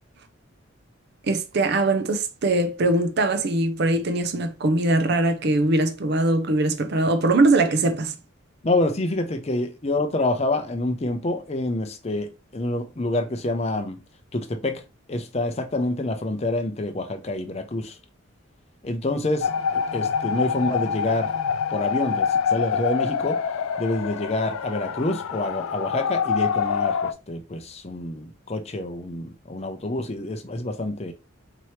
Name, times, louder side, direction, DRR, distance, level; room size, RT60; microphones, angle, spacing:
voice 1, 1.3-8.1, right 2 dB, 50° right, 0.5 m, -21 dB
voice 2, 8.6-14.0 14.3-14.8 15.1-18.0 18.8-21.3 21.7-23.4 23.8-31.1, left 2 dB, 30° left, 0.5 m, -27 dB
sound 1, 19.4-27.1, left 6 dB, 80° left, 0.4 m, -26 dB
4.5 x 2.9 x 3.1 m
head